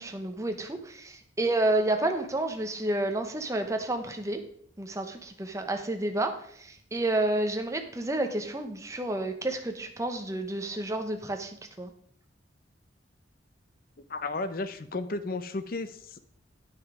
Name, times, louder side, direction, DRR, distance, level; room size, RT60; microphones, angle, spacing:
voice 1, 0.0-4.4 4.8-11.9, right 2 dB, 15° right, 5 dB, 0.8 m, -30 dB
voice 2, 14.1-16.2, left 3 dB, 50° left, 11 dB, 0.7 m, -33 dB
9.5 x 6.4 x 4.9 m, 0.65 s
head